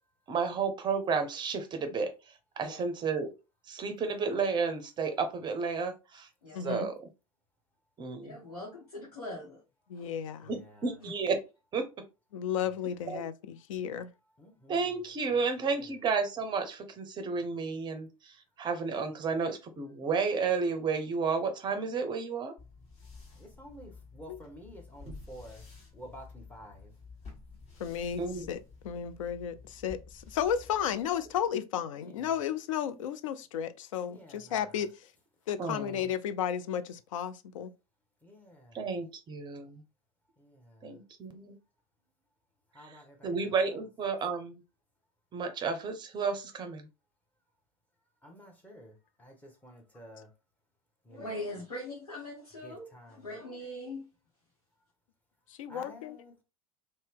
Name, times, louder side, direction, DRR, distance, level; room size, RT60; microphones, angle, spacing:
voice 1, 0.3-2.1 2.6-3.3 3.7-6.3 6.6-6.9 8.0-8.3 10.5-11.4 11.7-11.9 13.1-13.2 14.7-22.5 28.2-28.5 35.6-36.0 38.7-39.8 40.8-41.6 43.2-44.6 45.3-46.9, right 5 dB, 25° right, 0.6 m, -32 dB
voice 2, 6.5-6.9 9.9-10.5 12.3-14.1 27.8-35.1 35.5-37.7 55.5-56.2, left 9 dB, 60° left, 0.4 m, -33 dB
voice 3, 8.2-9.6 9.9-10.1 11.0-11.1 51.1-54.0, left 1 dB, 80° left, 0.9 m, -41 dB
voice 4, 10.4-11.0 12.7-13.0 14.4-15.1 15.6-16.0 23.3-25.7 25.9-26.9 31.9-32.4 34.0-34.8 38.2-38.9 40.4-41.0 42.7-43.9 48.2-50.3 51.0-51.5 52.6-53.3 55.7-56.4, equal, 10° left, 0.8 m, -52 dB
sound 1, 22.6-31.5, left 3 dB, 35° left, 1.3 m, -51 dB
2.6 x 2.1 x 3.4 m
figure-of-eight pair, 80°, 19 cm